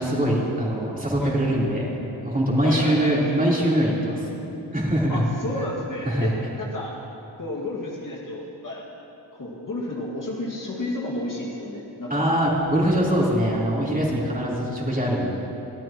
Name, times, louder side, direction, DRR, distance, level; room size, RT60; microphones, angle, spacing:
voice 1, 0.0-1.9 2.2-4.2 4.7-5.2 5.6-5.7 6.1-6.3 12.1-15.3, equal, 20° right, -5 dB, 3.7 m, -22 dB
voice 2, 2.6-3.4 5.1-6.9 7.4-8.8 9.3-12.3, left 1 dB, 45° left, -3 dB, 2.1 m, -32 dB
21.5 x 13.5 x 3.0 m, 3.0 s
cardioid pair, 75°, 47 cm